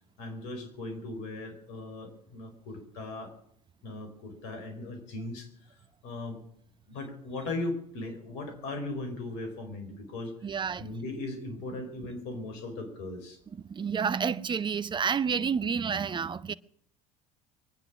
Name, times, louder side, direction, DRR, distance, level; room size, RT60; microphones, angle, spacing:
voice 1, 0.2-3.3 3.8-5.8 6.0-6.5 6.9-10.3 10.8-13.4, left 2 dB, 65° left, 4.6 m, -38 dB
voice 2, 10.4-10.9 13.5-16.5, right 6 dB, 25° right, 0.8 m, -30 dB
23.0 x 9.7 x 6.2 m
figure-of-eight pair, 65°, 20 cm